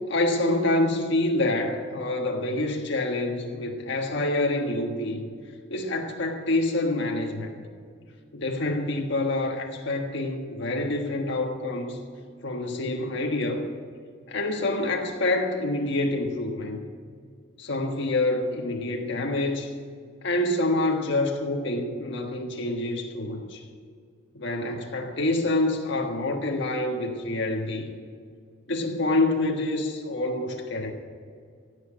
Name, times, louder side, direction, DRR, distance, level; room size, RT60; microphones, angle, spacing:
voice 1, 0.1-5.2 5.7-7.6 8.3-12.0 12.4-13.7 14.3-16.8 17.6-19.7 20.2-23.6 24.3-27.9 28.7-30.9, left 2 dB, 60° left, 2 dB, 1.4 m, -27 dB
16.0 x 8.2 x 8.7 m, 2.2 s
head